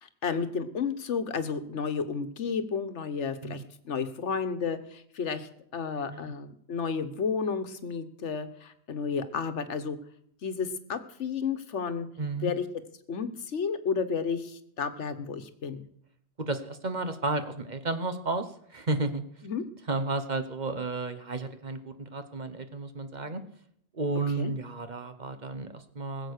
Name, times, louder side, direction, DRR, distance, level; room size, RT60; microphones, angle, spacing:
voice 1, 0.0-10.0 10.4-12.1 12.4-12.6 13.1-15.8 19.4-19.6 24.4-24.5, left 5 dB, 80° left, 11 dB, 1.4 m, -32 dB
voice 2, 12.2-12.5 16.4-19.2 19.9-23.4 23.9-26.3, right 3 dB, 40° right, 9 dB, 1.2 m, -32 dB
20.5 x 7.8 x 6.6 m, 0.68 s
omnidirectional pair, 1.2 m